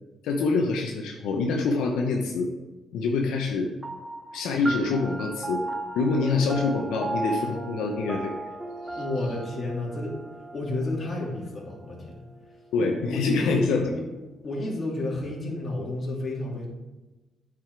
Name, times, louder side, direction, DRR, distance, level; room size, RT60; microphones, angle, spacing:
voice 1, 0.2-2.5 2.9-3.7 4.3-5.6 6.0-8.3 8.8-9.0 12.7-13.8, left 4 dB, 90° left, 1 dB, 0.8 m, -25 dB
sound 1, 3.8-12.6, right 2 dB, 15° right, 0.8 m, -36 dB
voice 2, 8.9-10.2 10.5-12.1 12.8-14.0 14.4-16.7, left 2 dB, 40° left, -4 dB, 2.8 m, -31 dB
8.6 x 4.9 x 4.7 m, 1.1 s
cardioid pair, 90°, 0 cm